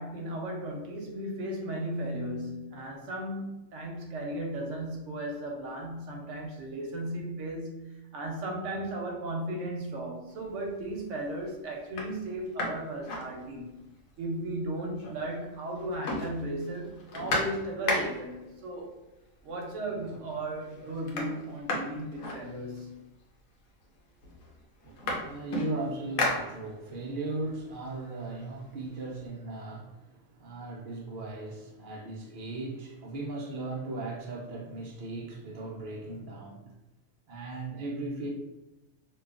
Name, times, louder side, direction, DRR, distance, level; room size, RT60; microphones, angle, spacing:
voice 1, 0.0-13.8 14.2-18.9 19.4-23.0, right 1 dB, 70° right, 0 dB, 0.8 m, -36 dB
sound 1, 10.4-10.9 11.4-11.5 11.8-13.9 14.3-14.4 14.6-15.4 15.7-18.4 19.4-19.5 19.9-20.4 20.6-23.0 23.8-23.9 24.2-27.1 27.5-29.2, left 1 dB, 75° left, 1.1 m, -35 dB
voice 2, 24.8-36.7 37.3-38.3, right 2 dB, 85° right, -3 dB, 0.4 m, -37 dB
2.7 x 2.3 x 2.4 m, 0.98 s
omnidirectional pair, 1.5 m